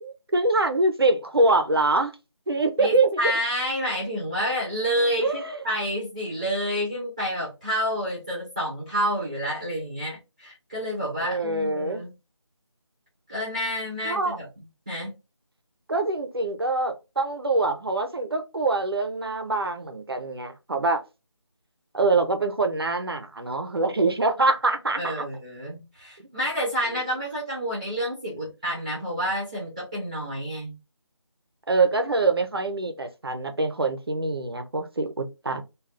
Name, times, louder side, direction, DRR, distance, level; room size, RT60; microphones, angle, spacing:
voice 1, 0.0-2.1 2.5-3.3 5.2-5.6 11.2-12.0 14.0-14.4 15.9-21.0 21.9-25.3 31.7-35.6, right 2 dB, 55° right, 0.6 m, -24 dB
voice 2, 2.8-12.1 13.3-14.5 14.9-15.1 25.0-30.7, equal, 15° right, 0.7 m, -29 dB
2.5 x 2.3 x 3.2 m
figure-of-eight pair, 175°, 15 cm